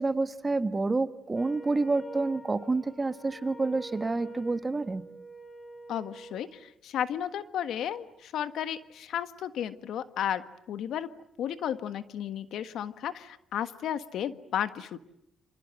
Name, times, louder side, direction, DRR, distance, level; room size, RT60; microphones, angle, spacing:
voice 1, 0.0-5.0, right 3 dB, 25° right, 11 dB, 1.4 m, -28 dB
Wind instrument woodwind instrument, 1.3-6.6, right 1 dB, 30° left, 4.9 m, -46 dB
voice 2, 5.9-11.1 11.4-15.0, left 10 dB, 75° left, 11 dB, 1.5 m, -33 dB
29.0 x 26.0 x 7.6 m, 0.75 s
cardioid pair, 90°, 0 cm